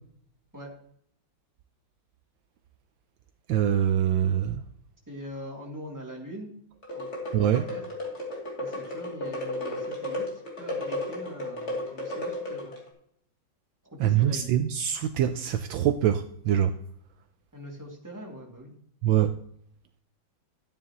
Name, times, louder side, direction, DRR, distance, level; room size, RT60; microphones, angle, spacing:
voice 1, 3.5-4.6 7.3-7.6 14.0-16.8 19.0-19.3, right 10 dB, 75° right, 1.3 m, -24 dB
voice 2, 5.1-6.5 6.9-7.1 7.4-7.9 8.6-12.7 13.8-14.5 17.5-18.7, equal, 10° right, 2.2 m, -42 dB
sound 1, 6.8-12.9, left 1 dB, 35° left, 2.9 m, -34 dB
12.5 x 9.4 x 3.0 m
omnidirectional pair, 2.2 m